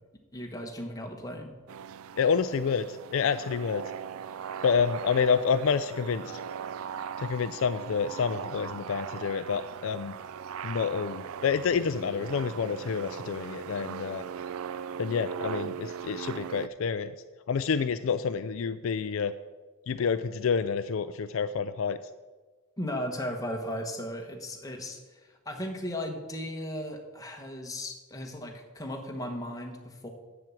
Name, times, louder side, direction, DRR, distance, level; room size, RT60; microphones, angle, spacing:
voice 1, 0.3-1.5 22.8-25.2 25.4-30.1, left 1 dB, 15° left, 2 dB, 1.2 m, -36 dB
sound 1, 1.7-16.7, right 8 dB, 75° right, 0.4 m, -39 dB
voice 2, 2.2-3.8 4.6-6.4 7.2-10.1 10.6-14.2 15.0-17.1 17.5-19.3 19.9-22.0, left 6 dB, 65° left, 11 dB, 0.4 m, -28 dB
7.5 x 7.2 x 7.7 m, 1.3 s
head